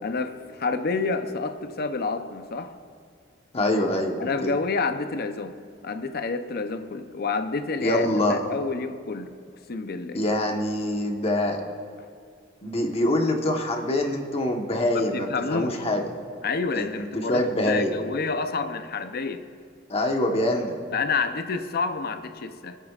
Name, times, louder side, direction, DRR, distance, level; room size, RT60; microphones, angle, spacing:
voice 1, 0.0-2.8 4.2-9.4 9.7-10.2 14.9-15.8 16.4-19.5 20.9-22.8, left 4 dB, 55° left, 0.6 m, -29 dB
voice 2, 3.5-4.5 7.8-8.4 10.1-11.6 12.6-16.0 16.7-17.9 19.9-20.8, left 1 dB, 30° left, 1.2 m, -25 dB
25.5 x 8.5 x 2.4 m
head